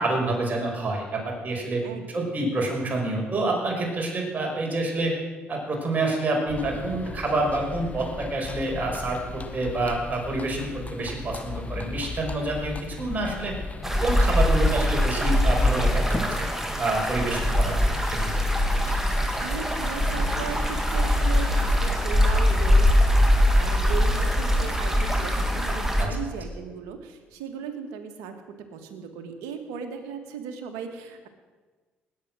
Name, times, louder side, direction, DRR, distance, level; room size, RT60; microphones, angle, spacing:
voice 1, 0.0-1.8 2.1-5.1 5.5-13.5 14.0-16.4 16.8-17.8 18.0-18.2 26.0-26.1, right 2 dB, 35° right, 0 dB, 5.6 m, -27 dB
voice 2, 1.8-2.3 19.4-31.3, right 7 dB, 85° right, 6 dB, 1.7 m, -37 dB
sound 1, 6.5-22.1, left 3 dB, 30° left, 1.7 m, -37 dB
sound 2, 13.8-26.1, left 1 dB, 10° right, 2.5 m, -22 dB
19.5 x 8.7 x 6.3 m, 1.3 s
hypercardioid pair, 60°, 5 cm